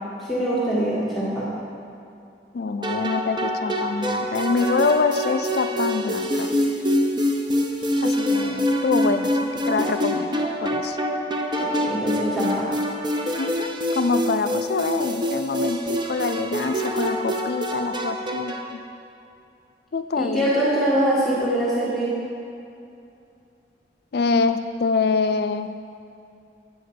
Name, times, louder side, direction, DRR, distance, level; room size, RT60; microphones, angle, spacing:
voice 1, 0.2-1.5 11.7-12.7 20.2-22.2, right 1 dB, ahead, -10 dB, 1.8 m, -23 dB
voice 2, 2.5-6.5 8.0-11.0 13.4-18.8 19.9-20.5 24.1-25.7, left 4 dB, 60° left, 10 dB, 0.4 m, -25 dB
sound 1, 2.8-18.8, equal, 25° right, 0.6 m, -25 dB
9.3 x 4.9 x 6.3 m, 2.6 s
head